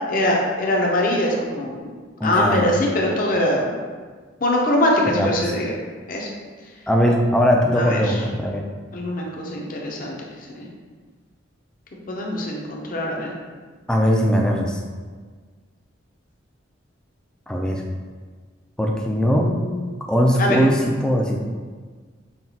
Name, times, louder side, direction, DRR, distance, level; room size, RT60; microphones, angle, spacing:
voice 1, 0.1-1.9 2.2-3.7 4.4-5.7 6.1-6.3 7.8-8.2 8.9-10.2 10.5-10.7 12.1-13.3 19.2-19.9 20.4-20.6, left 1 dB, 45° left, -1 dB, 0.6 m, -22 dB
voice 2, 2.2-2.7 5.1-5.3 6.9-8.6 13.9-14.8 17.5-17.8 18.8-19.5 20.1-21.4, equal, 5° left, -1 dB, 0.3 m, -20 dB
5.7 x 2.3 x 2.8 m, 1.5 s
head